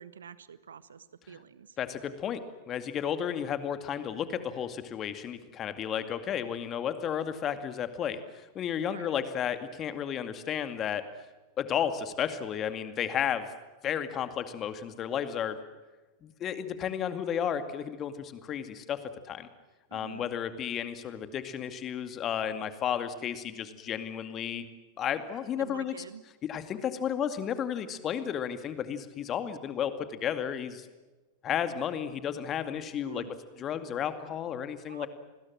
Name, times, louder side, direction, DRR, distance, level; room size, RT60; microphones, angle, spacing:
voice 1, 0.0-1.8 8.9-9.1 19.9-20.3 25.6-26.2 33.0-33.3 34.9-35.1, right 7 dB, 70° right, 16 dB, 1.3 m, -46 dB
voice 2, 1.8-2.4 2.7-11.0 11.6-13.5 13.8-15.6 16.2-19.5 19.9-24.7 25.0-25.9 26.5-30.9 31.4-33.2 33.6-35.1, left 9 dB, 30° left, 10 dB, 2.3 m, -33 dB
29.0 x 21.0 x 7.7 m, 1.2 s
figure-of-eight pair, 90°, 0 cm